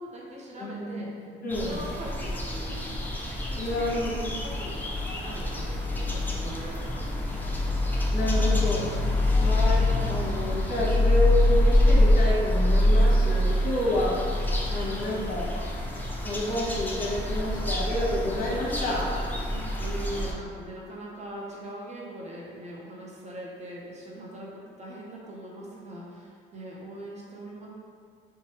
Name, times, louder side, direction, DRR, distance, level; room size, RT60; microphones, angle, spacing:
voice 1, 0.0-1.1 1.6-3.2 3.5-4.1 4.4-7.6 19.5-27.7, right 1 dB, 35° right, -4 dB, 0.7 m, -41 dB
voice 2, 0.6-1.8 3.6-4.3 8.1-8.9 9.4-14.1 14.7-15.7 16.2-19.1, left 1 dB, 45° left, -5 dB, 0.9 m, -29 dB
sound 1, 1.5-20.3, left 1 dB, 10° left, 0.4 m, -25 dB
3.0 x 2.2 x 2.9 m, 2.2 s
cardioid pair, 90°, 20 cm